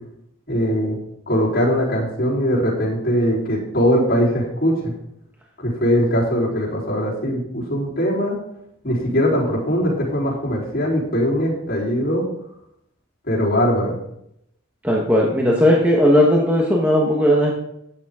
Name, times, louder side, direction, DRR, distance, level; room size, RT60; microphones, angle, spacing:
voice 1, 0.5-1.0 1.3-4.9 5.6-8.4 8.8-12.2 13.3-14.0, equal, 45° left, -7 dB, 3.6 m, -21 dB
voice 2, 14.8-17.5, equal, 10° right, -3 dB, 1.2 m, -16 dB
12.0 x 9.0 x 3.7 m, 0.77 s
head